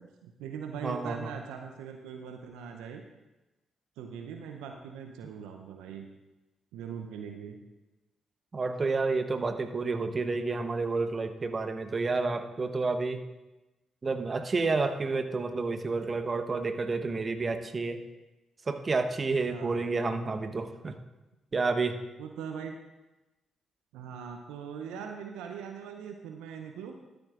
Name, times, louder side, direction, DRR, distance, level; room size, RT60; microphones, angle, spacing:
voice 1, 0.0-3.0 4.0-6.0 6.7-7.6 19.5-19.8 22.2-22.8 23.9-26.9, right 7 dB, 75° right, 4 dB, 0.6 m, -41 dB
voice 2, 0.8-1.3 8.5-13.2 14.0-18.0 18.7-21.0 21.5-22.0, right 3 dB, 40° right, 8 dB, 0.9 m, -30 dB
13.0 x 11.5 x 2.5 m, 1.0 s
hypercardioid pair, 40°, 0 cm